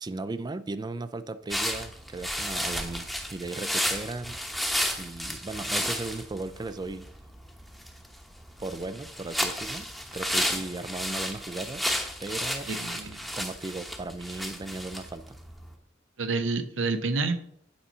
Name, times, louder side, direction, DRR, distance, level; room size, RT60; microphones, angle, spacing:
voice 1, 0.0-4.4 5.0-7.1 8.6-9.9 10.1-11.8 12.2-12.7 13.3-15.4, right 2 dB, 20° right, 13 dB, 0.4 m, -36 dB
sound 1, 1.5-15.7, equal, ahead, 0.9 m, -33 dB
voice 2, 12.7-13.3 16.2-17.4, right 3 dB, 80° right, 8 dB, 0.7 m, -28 dB
8.6 x 4.2 x 5.5 m, 0.70 s
head